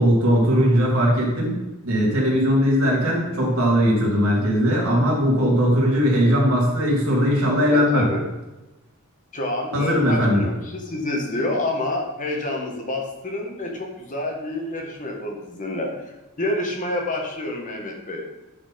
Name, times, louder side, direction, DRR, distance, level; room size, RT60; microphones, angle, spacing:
voice 1, 0.0-8.1 9.7-10.4, equal, 70° right, -3 dB, 2.7 m, -19 dB
voice 2, 7.7-8.2 9.3-18.2, left 1 dB, 35° left, 1 dB, 1.4 m, -28 dB
10.0 x 4.4 x 4.2 m, 1.1 s
head